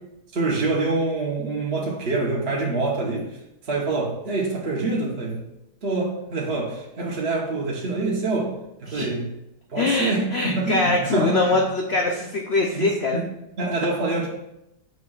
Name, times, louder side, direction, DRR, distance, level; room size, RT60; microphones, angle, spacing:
voice 1, 0.3-3.4 3.6-5.4 5.8-9.3 9.7-11.6 12.7-12.9 13.1-13.2 13.6-14.3, right 3 dB, 40° right, -3 dB, 1.1 m, -26 dB
voice 2, 9.8-13.2, left 2 dB, 65° left, 2 dB, 0.6 m, -23 dB
9.0 x 5.8 x 2.4 m, 0.86 s
omnidirectional pair, 1.9 m